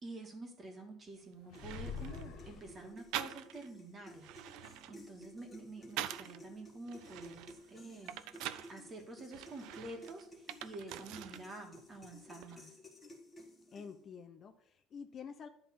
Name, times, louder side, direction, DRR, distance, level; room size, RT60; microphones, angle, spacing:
voice 1, 0.0-8.4 8.7-12.7, right 2 dB, 25° right, 3 dB, 1.7 m, -49 dB
sound 1, 1.1-1.2 1.5-2.3 3.1-3.7 4.1-6.4 6.9-8.7 9.3-11.5 11.8-12.6, right 12 dB, 65° right, 0.5 m, -45 dB
sound 2, 1.5-3.1, left 6 dB, 60° left, 1.2 m, -45 dB
sound 3, 1.5-14.2, left 1 dB, 10° left, 1.6 m, -56 dB
voice 2, 13.7-15.5, left 6 dB, 30° left, 7 dB, 0.6 m, -49 dB
10.5 x 3.6 x 7.0 m, 0.69 s
cardioid pair, 155°, 0 cm